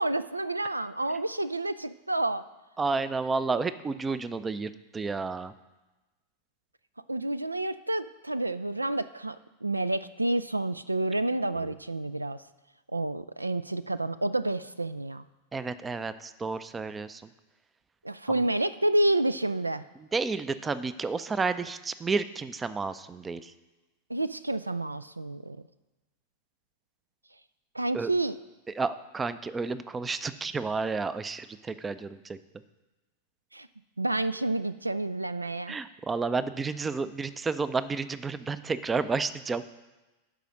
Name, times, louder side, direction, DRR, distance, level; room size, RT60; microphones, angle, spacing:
voice 1, 0.0-2.4 7.1-12.4 12.9-15.2 18.0-19.8 24.1-25.6 27.7-28.4 33.5-33.7 34.0-35.8, right 2 dB, 85° right, 15 dB, 0.3 m, -29 dB
voice 2, 2.8-5.5 11.5-11.7 15.5-17.2 18.3-18.5 20.1-23.5 27.9-28.1 28.8-32.4 35.7-39.6, right 4 dB, 15° right, 14 dB, 0.4 m, -31 dB
11.5 x 4.9 x 6.4 m, 1.1 s
figure-of-eight pair, 90°, 0 cm